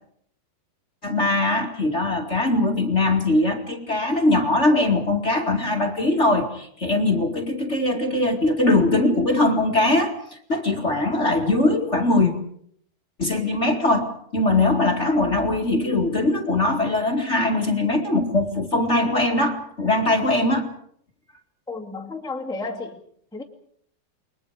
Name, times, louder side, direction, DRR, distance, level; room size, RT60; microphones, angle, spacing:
voice 1, 1.0-12.3 13.2-20.7, left 2 dB, 25° left, 1 dB, 1.7 m, -21 dB
voice 2, 21.7-23.0 23.3-23.4, left 3 dB, ahead, 0 dB, 1.0 m, -32 dB
29.5 x 23.5 x 5.0 m, 0.66 s
omnidirectional pair, 4.6 m